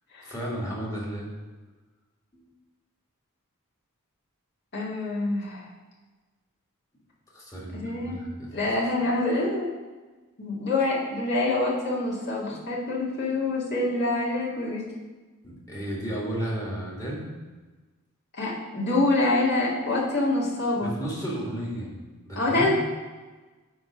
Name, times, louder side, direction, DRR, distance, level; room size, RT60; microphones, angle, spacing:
voice 1, 0.2-1.3 2.3-2.4 7.3-8.6 15.4-17.3 20.8-21.9 22.2-22.7, right 1 dB, 15° left, -5 dB, 1.7 m, -33 dB
voice 2, 4.7-5.7 7.7-8.2 8.5-9.7 10.4-14.9 18.4-20.9 22.4-22.7, left 2 dB, 50° left, -6 dB, 2.0 m, -26 dB
9.3 x 3.1 x 5.9 m, 1.3 s
head